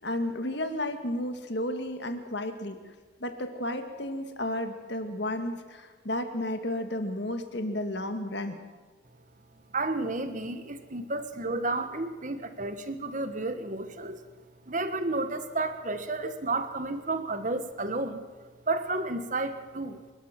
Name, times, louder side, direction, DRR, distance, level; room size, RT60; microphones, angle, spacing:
voice 1, 0.0-2.8 3.2-8.6, left 1 dB, 55° left, 7 dB, 2.2 m, -32 dB
voice 2, 9.7-14.2 14.7-18.2 18.7-20.0, right 2 dB, 40° right, 9 dB, 1.5 m, -31 dB
28.5 x 12.5 x 7.6 m, 1.5 s
head